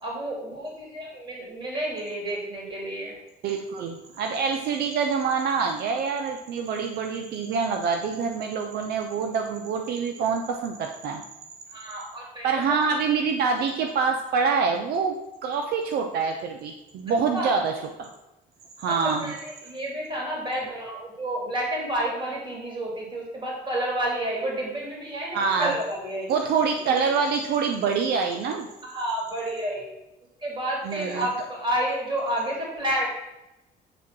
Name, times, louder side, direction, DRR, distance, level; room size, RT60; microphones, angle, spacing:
voice 1, 0.0-3.1 11.7-12.8 17.3-17.5 18.8-26.3 28.9-29.8 30.4-33.1, right 1 dB, 30° right, -2 dB, 3.0 m, -30 dB
voice 2, 3.4-11.2 12.4-18.1 18.8-19.3 25.3-25.8 26.3-28.7 30.8-31.3, right 5 dB, 70° right, 4 dB, 0.8 m, -26 dB
8.1 x 3.7 x 6.0 m, 0.96 s
cardioid pair, 110°, 17 cm